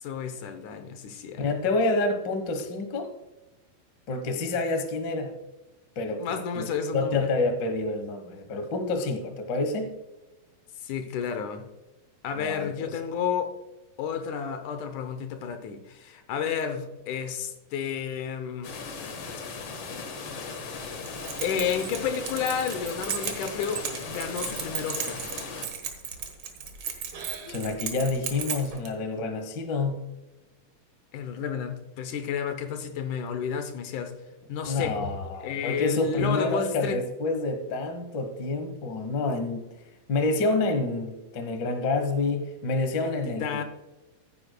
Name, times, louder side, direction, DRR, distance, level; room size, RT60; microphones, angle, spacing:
voice 1, 0.0-1.5 6.2-7.3 10.8-11.7 12.2-13.5 14.0-19.0 20.2-20.5 21.4-25.2 31.1-34.1 34.5-35.0 35.4-37.0 43.0-43.6, left 7 dB, 70° left, 8 dB, 2.0 m, -31 dB
voice 2, 1.4-3.1 4.1-5.4 5.9-6.7 6.9-9.9 12.4-13.0 27.5-30.1 34.6-39.7 40.1-43.6, left 3 dB, 90° left, 7 dB, 0.9 m, -28 dB
sound 1, 18.6-25.7, left 4 dB, 55° left, 1.6 m, -38 dB
Keys jangling, 21.0-28.9, right 7 dB, 55° right, 1.8 m, -36 dB
14.5 x 9.6 x 2.3 m, 1.0 s
omnidirectional pair, 4.2 m